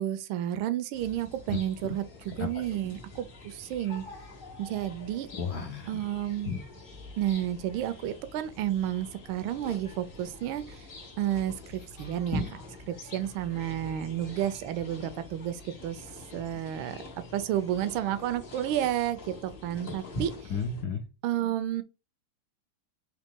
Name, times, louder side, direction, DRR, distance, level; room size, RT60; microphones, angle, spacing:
voice 1, 0.0-4.0 4.6-5.3 5.9-6.6 7.2-10.6 11.2-12.6 12.9-16.0 16.3-17.0 17.3-20.3 21.2-21.8, right 11 dB, 75° right, 1.3 m, -31 dB
sound 1, 0.9-20.8, left 1 dB, 50° left, 0.6 m, -43 dB
voice 2, 2.4-3.0 5.3-6.0 6.5-6.6 12.0-12.1 20.5-21.0, left 5 dB, 75° left, 0.9 m, -34 dB
4.0 x 2.9 x 3.6 m
omnidirectional pair, 2.4 m